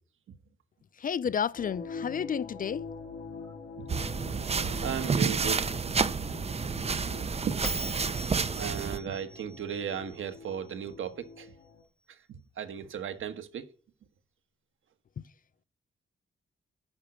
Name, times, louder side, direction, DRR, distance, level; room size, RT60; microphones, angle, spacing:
voice 1, 1.0-2.8, left 7 dB, 45° left, 0.4 m, -31 dB
sound 1, 1.6-11.8, left 5 dB, 85° left, 2.4 m, -45 dB
sound 2, 3.9-9.0, right 5 dB, 30° right, 0.6 m, -30 dB
voice 2, 4.6-5.8 6.2-6.3 7.5-7.6 8.6-11.5 12.1-13.7, right 8 dB, 85° right, 1.4 m, -36 dB
Bell, 7.6-10.9, right 1 dB, 5° left, 0.9 m, -42 dB
10.5 x 6.0 x 8.6 m
wide cardioid pair, 105°, 20 cm